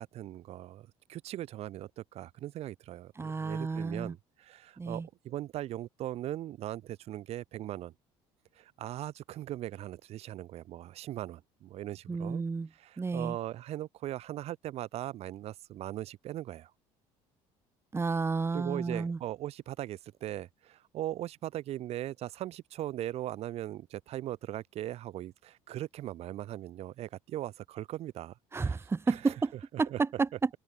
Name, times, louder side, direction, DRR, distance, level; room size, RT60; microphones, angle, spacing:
voice 1, 0.0-7.9 8.5-12.4 12.7-16.7 18.5-29.3 29.7-30.0, right 13 dB, 60° right, 6.9 m, -39 dB
voice 2, 3.2-4.1 4.8-5.1 12.1-12.7 13.0-13.4 17.9-19.2 28.5-29.5 29.8-30.5, right 4 dB, 20° right, 4.9 m, -31 dB
cardioid pair, 110°, 12 cm